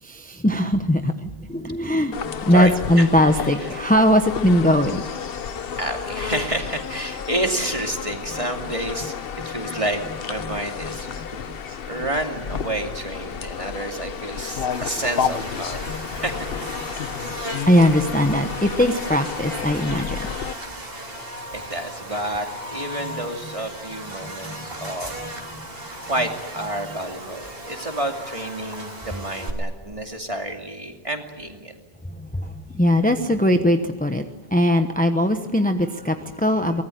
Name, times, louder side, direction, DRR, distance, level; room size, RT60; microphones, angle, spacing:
voice 1, 0.0-5.2 9.4-9.5 10.4-10.6 15.9-16.1 17.0-17.4 17.7-20.3 23.1-23.2 24.2-24.9 25.5-26.0 27.5-27.6 32.1-34.2 34.5-36.8, equal, 10° left, 7 dB, 1.0 m, -21 dB
sound 1, 2.1-20.5, left 7 dB, 65° left, 1.1 m, -31 dB
voice 2, 2.5-3.8 5.3-5.4 5.8-11.2 11.7-16.5 20.7-20.9 21.5-25.2 26.0-31.7, right 1 dB, 30° right, 4 dB, 2.7 m, -30 dB
Buzz, 14.7-29.5, right 1 dB, 65° right, 3.5 m, -36 dB
24.0 x 19.5 x 9.3 m, 1.4 s
omnidirectional pair, 1.0 m